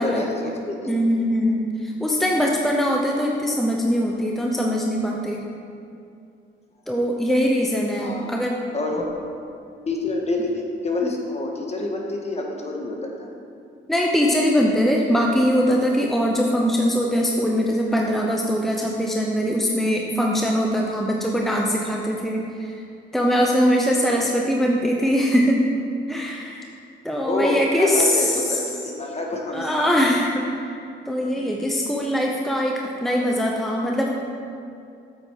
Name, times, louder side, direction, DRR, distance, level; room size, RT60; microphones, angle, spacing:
voice 1, 0.0-0.9 7.9-8.3 8.7-9.0 9.8-13.3 24.1-24.4 27.2-29.8 31.3-31.6 32.0-32.1, left 2 dB, 35° left, 0 dB, 1.6 m, -27 dB
voice 2, 0.9-5.4 6.9-8.6 13.9-22.7 23.1-25.6 26.1-26.6 27.0-28.6 29.5-34.1, equal, ahead, -1 dB, 0.9 m, -22 dB
8.2 x 8.0 x 4.7 m, 2.5 s
cardioid pair, 90°, 20 cm